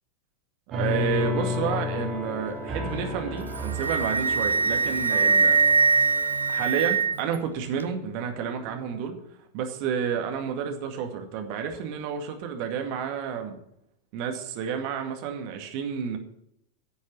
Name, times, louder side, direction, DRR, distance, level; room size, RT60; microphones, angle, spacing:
sound 1, 0.7-7.9 8.4-9.0, left 2 dB, 25° right, 3.1 m, -33 dB
voice 1, 0.7-5.6 6.5-9.1 9.5-13.6 14.1-16.2, right 7 dB, 45° right, 4 dB, 2.1 m, -30 dB
Wind instrument woodwind instrument, 3.4-7.4, right 5 dB, 75° right, 0.6 m, -22 dB
11.0 x 7.1 x 7.7 m, 0.78 s
figure-of-eight pair, 90°, 0 cm